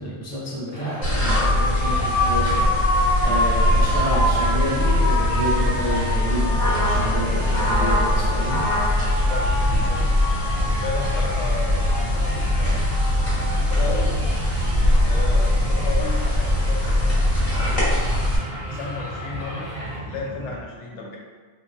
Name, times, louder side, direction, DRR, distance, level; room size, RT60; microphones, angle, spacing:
voice 1, 0.0-2.7 3.2-8.7, equal, 25° left, -7 dB, 0.4 m, -29 dB
Crowd, 0.7-20.0, equal, 25° right, 0.6 m, -37 dB
sound 1, 1.0-18.4, left 1 dB, 40° left, 0.9 m, -21 dB
sound 2, 6.0-20.6, right 1 dB, 65° right, 0.7 m, -37 dB
voice 2, 9.0-10.3 10.8-12.8 13.7-14.2 15.0-18.1 18.7-21.2, left 3 dB, 70° left, -1 dB, 0.9 m, -34 dB
3.1 x 2.2 x 2.5 m, 1.5 s
omnidirectional pair, 1.3 m